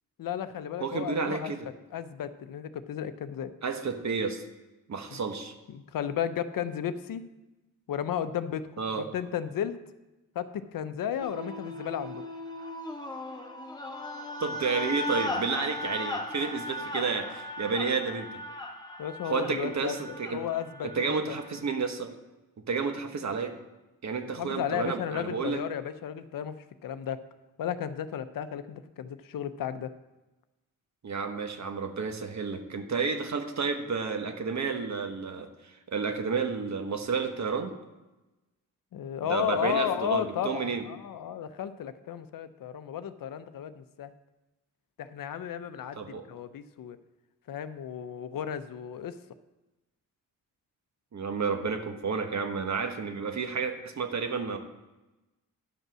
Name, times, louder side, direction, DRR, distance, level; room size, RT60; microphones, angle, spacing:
voice 1, 0.2-1.5 1.9-3.5 5.1-5.2 5.7-7.2 7.9-8.7 8.9-9.8 10.3-12.2 19.0-20.0 20.3-21.4 24.4-27.2 27.6-29.9 38.9-44.1 45.0-47.0 47.5-49.2, left 9 dB, 75° left, 12 dB, 0.7 m, -34 dB
voice 2, 0.8-1.7 3.6-4.4 4.9-5.5 8.8-9.1 14.4-18.3 19.3-20.4 20.9-22.1 22.7-23.5 24.0-25.6 31.0-37.7 39.3-40.8 46.0-46.2 51.1-54.6, right 5 dB, 55° right, 6 dB, 1.2 m, -31 dB
sound 1, 11.2-21.6, left 1 dB, 10° left, 1.1 m, -38 dB
11.0 x 5.3 x 6.2 m, 1.0 s
cardioid pair, 95°, 34 cm